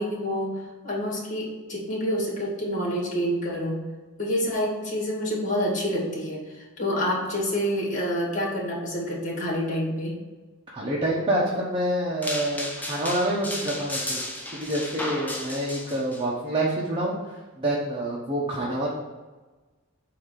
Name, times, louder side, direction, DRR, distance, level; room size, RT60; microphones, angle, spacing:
voice 1, 0.0-3.8 4.2-10.2, equal, 40° left, -2 dB, 2.1 m, -28 dB
voice 2, 10.7-14.2 14.5-17.2 17.6-18.9, right 1 dB, 25° right, -5 dB, 1.1 m, -27 dB
sound 1, 12.2-16.2, left 1 dB, 10° left, 0.8 m, -33 dB
8.4 x 2.9 x 5.8 m, 1.2 s
head